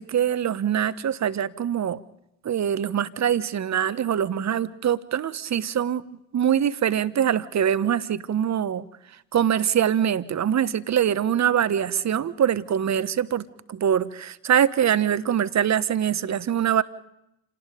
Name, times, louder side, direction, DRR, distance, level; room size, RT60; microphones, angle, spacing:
voice 1, 0.0-2.0 2.4-6.1 6.3-16.8, right 9 dB, 40° right, 16 dB, 1.3 m, -24 dB
29.0 x 18.5 x 5.2 m, 0.84 s
figure-of-eight pair, 45°, 41 cm